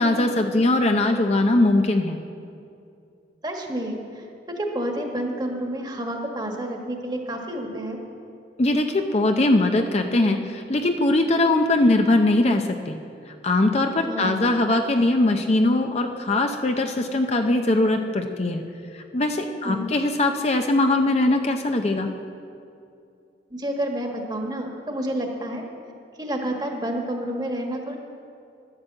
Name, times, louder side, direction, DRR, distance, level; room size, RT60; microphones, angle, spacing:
voice 1, 0.0-2.2 8.6-13.0 13.4-18.6 19.1-22.1, left 2 dB, 35° left, 5 dB, 0.6 m, -21 dB
voice 2, 3.4-8.0 14.1-14.5 19.6-19.9 23.5-25.6 26.2-28.0, right 1 dB, 25° right, 2 dB, 1.5 m, -29 dB
11.0 x 11.0 x 7.7 m, 2.6 s
head